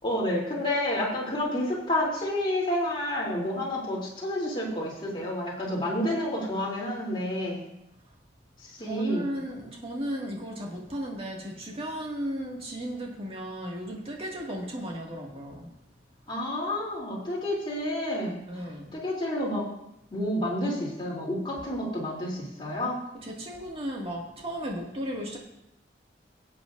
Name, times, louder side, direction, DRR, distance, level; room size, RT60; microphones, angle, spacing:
voice 1, 0.0-7.6 8.6-9.3 16.3-18.4 18.9-19.6 20.1-23.0, left 1 dB, 30° left, -4 dB, 3.1 m, -29 dB
voice 2, 8.8-15.7 18.5-19.0 23.1-25.4, equal, 35° right, -1 dB, 2.0 m, -35 dB
17.5 x 8.5 x 2.6 m, 0.83 s
head